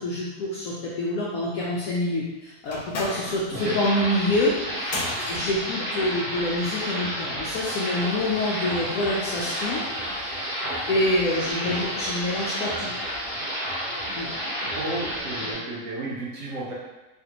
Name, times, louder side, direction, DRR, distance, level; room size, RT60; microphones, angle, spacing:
voice 1, 0.0-9.8 10.9-12.9 14.2-14.4 15.4-15.5, left 1 dB, 70° left, -6 dB, 0.9 m, -26 dB
sound 1, 2.7-6.8, left 2 dB, 85° left, 1.2 m, -36 dB
sound 2, 3.6-15.5, equal, 45° right, 0.9 m, -31 dB
sound 3, 7.6-15.2, left 1 dB, 35° left, 1.0 m, -43 dB
voice 2, 14.7-16.7, right 2 dB, 70° right, -5 dB, 1.2 m, -32 dB
3.3 x 2.4 x 2.8 m, 1.1 s
omnidirectional pair, 1.7 m